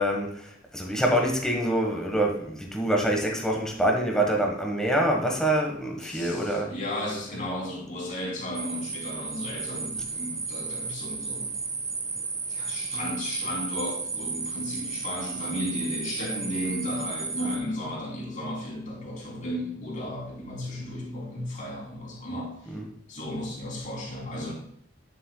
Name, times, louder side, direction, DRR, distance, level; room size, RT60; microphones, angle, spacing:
voice 1, 0.0-6.7 22.7-22.9, right 1 dB, 5° left, 0 dB, 1.3 m, -25 dB
voice 2, 6.0-11.5 12.5-22.7 23.1-24.5, left 1 dB, 45° left, -3 dB, 3.2 m, -34 dB
sound 1, 8.5-17.6, right 4 dB, 20° right, 0.8 m, -33 dB
9.1 x 7.8 x 2.3 m, 0.67 s
head